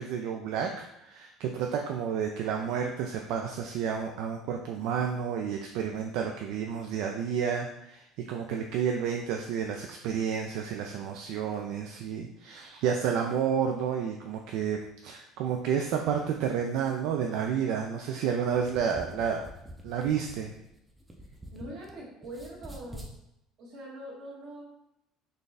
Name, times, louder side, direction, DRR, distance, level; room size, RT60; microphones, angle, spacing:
voice 1, 0.0-19.4 19.8-20.5, right 7 dB, 70° right, 3 dB, 0.3 m, -30 dB
sound 1, 18.5-21.9 22.2-23.1, equal, 10° right, 0.5 m, -46 dB
voice 2, 21.5-23.1 23.6-24.6, right 1 dB, 50° right, -3 dB, 1.2 m, -43 dB
4.0 x 2.6 x 3.3 m, 0.82 s
cardioid pair, 155°, 0 cm